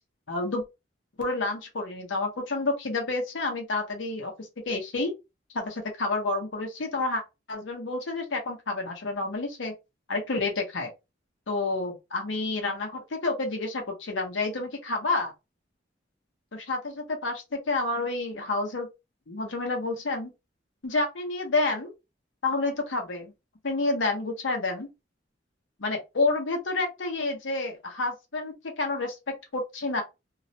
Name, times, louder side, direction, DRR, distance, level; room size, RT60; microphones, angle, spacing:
voice 1, 0.3-0.6 1.2-5.1 5.5-7.2 7.5-9.7 10.1-10.9 11.5-15.3 16.5-18.9 19.3-20.3 20.8-21.9 22.4-23.3 23.6-24.9 25.8-30.0, left 3 dB, 85° left, 0.7 m, -29 dB
2.3 x 2.0 x 2.7 m
head